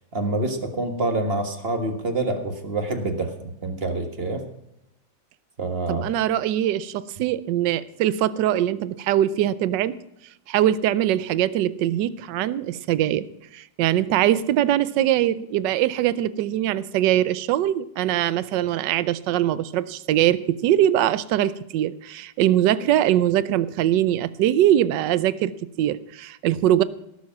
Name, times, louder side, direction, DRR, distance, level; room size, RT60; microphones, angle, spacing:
voice 1, 0.1-4.5 5.6-6.1, right 2 dB, 30° right, 5 dB, 1.7 m, -27 dB
voice 2, 5.9-10.0 10.5-13.3 13.5-25.5 25.8-26.8, right 12 dB, 70° right, 16 dB, 1.3 m, -22 dB
17.5 x 7.3 x 5.9 m, 0.84 s
omnidirectional pair, 2.1 m